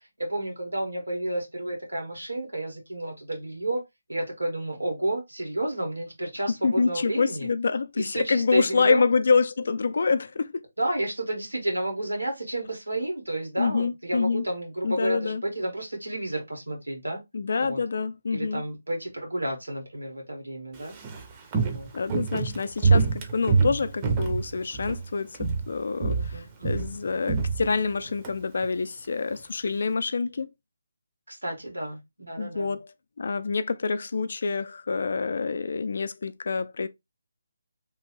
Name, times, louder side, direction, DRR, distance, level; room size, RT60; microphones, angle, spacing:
voice 1, 0.2-3.8 4.1-7.5 7.9-9.0 10.8-17.2 17.6-17.8 18.3-21.0 21.6-21.9 26.1-26.9 31.3-32.8, right 1 dB, 90° right, 1.6 m, -31 dB
voice 2, 6.6-10.6 13.6-14.4 14.8-15.4 17.3-18.6 21.9-30.5 32.4-32.8 33.2-36.9, left 4 dB, 60° left, 0.4 m, -26 dB
Walk footsteps, 20.8-25.1 25.3-25.7 26.0-28.3 28.6-28.7, right 4 dB, 25° right, 0.6 m, -26 dB
3.1 x 2.4 x 3.1 m
figure-of-eight pair, 150°, 0 cm